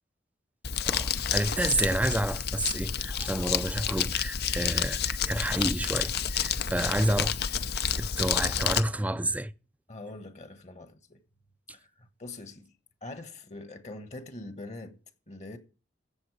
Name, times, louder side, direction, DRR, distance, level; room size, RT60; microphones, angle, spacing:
Crumpling crinkling, 0.6-8.8, left 7 dB, 60° left, 0.7 m, -29 dB
voice 1, 0.8-7.3 7.9-9.5, right 1 dB, 10° right, 0.5 m, -30 dB
voice 2, 6.7-7.1 9.9-11.2 11.7-12.7 13.0-15.0 15.3-15.6, left 2 dB, 40° left, 1.4 m, -43 dB
14.5 x 7.9 x 4.8 m
head